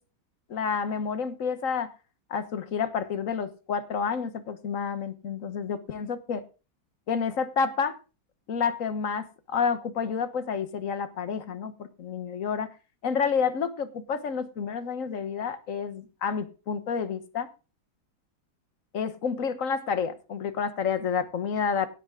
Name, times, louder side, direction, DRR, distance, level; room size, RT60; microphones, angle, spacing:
voice 1, 0.5-1.9 2.3-6.4 7.1-8.0 8.5-12.7 13.0-17.5 18.9-21.9, left 6 dB, 50° left, 12 dB, 1.5 m, -29 dB
17.0 x 8.3 x 3.6 m, 0.32 s
omnidirectional pair, 1.9 m